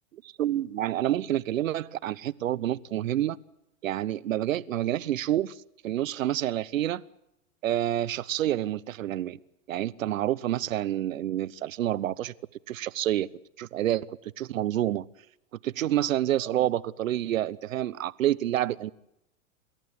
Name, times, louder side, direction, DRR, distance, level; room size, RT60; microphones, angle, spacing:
voice 1, 0.4-3.4 3.8-5.6 5.8-7.0 7.6-9.4 9.7-12.3 12.7-13.3 13.6-15.1 15.6-18.9, right 12 dB, 75° right, 0.9 m, -28 dB
28.0 x 14.0 x 9.4 m
hypercardioid pair, 115°, 39 cm